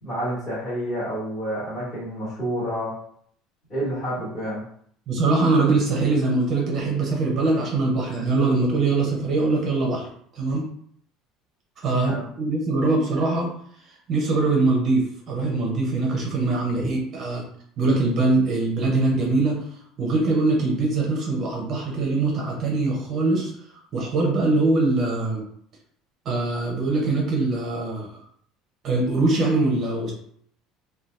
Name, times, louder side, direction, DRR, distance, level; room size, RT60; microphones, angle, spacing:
voice 1, 0.0-2.9 3.7-4.6 11.9-12.2 16.8-16.9, equal, 25° left, -9 dB, 1.1 m, -29 dB
voice 2, 5.1-10.1 10.3-10.6 11.8-13.5 14.1-17.4 17.8-19.6 20.0-23.5 23.9-25.4 26.2-28.2 28.8-30.1, right 3 dB, 30° right, -1 dB, 0.6 m, -22 dB
2.7 x 2.2 x 3.1 m, 0.63 s
cardioid pair, 180°, 0 cm